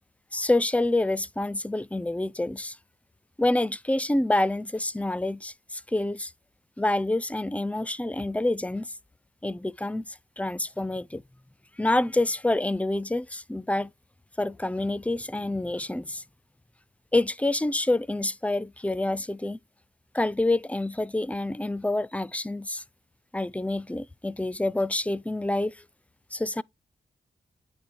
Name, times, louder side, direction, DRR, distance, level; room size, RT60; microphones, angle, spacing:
voice 1, 0.3-2.8 3.4-6.3 6.8-8.9 9.4-10.0 10.4-11.2 11.8-13.9 14.4-16.2 17.1-19.6 20.1-22.8 23.3-25.8 26.3-26.6, left 2 dB, 10° left, 0.5 m, -27 dB
9.1 x 3.7 x 4.3 m
supercardioid pair, 40°, 16 cm